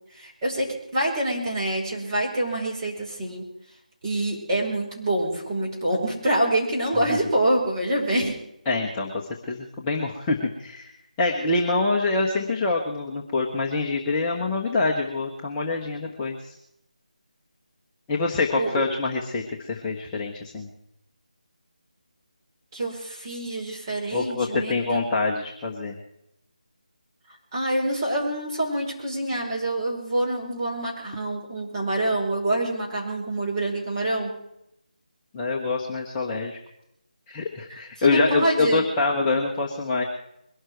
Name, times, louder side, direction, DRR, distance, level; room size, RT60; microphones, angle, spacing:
voice 1, 0.1-0.7 0.9-3.4 4.0-8.3 18.6-18.8 22.7-25.0 27.5-34.3 38.0-38.9, right 1 dB, 30° right, -3 dB, 5.0 m, -26 dB
voice 2, 8.7-10.9 11.2-16.5 18.1-20.7 24.1-26.0 35.3-36.6 37.3-40.0, left 3 dB, 15° left, -3 dB, 1.1 m, -25 dB
22.0 x 12.5 x 4.7 m, 0.79 s
figure-of-eight pair, 160°, 4 cm